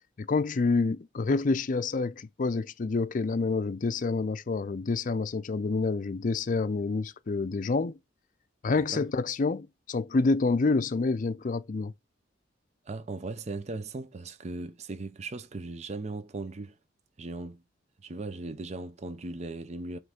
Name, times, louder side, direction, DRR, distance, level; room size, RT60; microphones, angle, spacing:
voice 1, 0.2-8.0 8.6-11.9, left 3 dB, 45° left, 0.4 m, -28 dB
voice 2, 12.9-16.7 17.2-17.6 18.0-20.0, right 3 dB, 35° right, 0.5 m, -38 dB
7.7 x 3.2 x 5.0 m
head